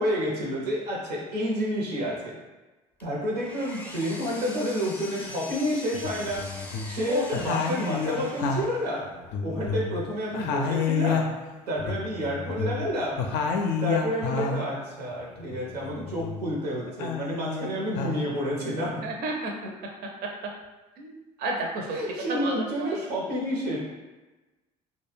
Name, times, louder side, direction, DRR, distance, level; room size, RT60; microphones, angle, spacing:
voice 1, 0.0-2.4 3.0-6.4 6.9-9.1 9.4-11.4 11.7-13.2 13.8-19.1 21.9-23.8, equal, 90° right, -3 dB, 0.7 m, -29 dB
Power tool, 3.0-9.1, left 2 dB, 5° left, 0.5 m, -42 dB
sound 1, 5.3-5.4 5.9-7.0 7.3-10.1 10.3-14.7 15.2-16.5 16.9-18.2, left 5 dB, 60° left, 0.4 m, -30 dB
voice 2, 19.0-19.5 20.2-20.3 21.0-21.1 21.4-22.0 22.3-22.5 22.8-22.9, right 2 dB, 50° right, 1 dB, 0.5 m, -30 dB
2.3 x 2.1 x 3.2 m, 1.1 s
hypercardioid pair, 60°, 20 cm